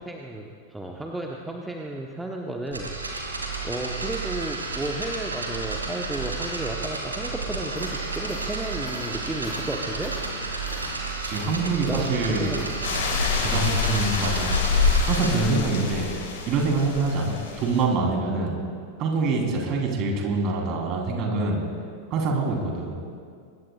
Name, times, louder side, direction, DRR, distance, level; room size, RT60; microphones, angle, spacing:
voice 1, 0.0-2.9 3.6-10.1 11.9-12.8 13.9-14.0 17.5-17.6, right 1 dB, 5° right, 0 dB, 1.2 m, -33 dB
sound 1, 2.7-15.3, right 3 dB, 80° right, 2.4 m, -32 dB
sound 2, 7.7-15.5, left 3 dB, 20° left, 2.9 m, -45 dB
voice 2, 11.2-12.5 13.4-14.5 14.8-16.1 16.5-18.6 19.0-21.6 22.1-22.9, right 3 dB, 35° right, 0 dB, 3.8 m, -25 dB
sound 3, 12.8-17.8, left 4 dB, 55° left, 3.6 m, -26 dB
24.5 x 21.0 x 2.5 m, 2.2 s
figure-of-eight pair, 90°, 0 cm